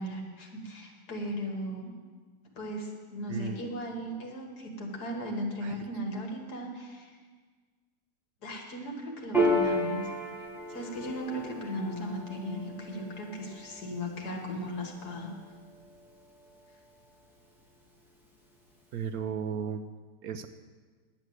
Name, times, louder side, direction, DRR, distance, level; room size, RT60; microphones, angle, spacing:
voice 1, 0.0-1.9 2.6-7.2 8.4-10.1 10.4-15.3, equal, 70° left, 1 dB, 2.2 m, -37 dB
voice 2, 3.3-3.6 5.6-5.8 18.9-19.9 20.2-20.5, right 7 dB, 70° right, 9 dB, 1.0 m, -35 dB
Piano, 9.3-16.3, equal, ahead, 1.8 m, -33 dB
10.5 x 8.0 x 7.7 m, 1.5 s
omnidirectional pair, 1.8 m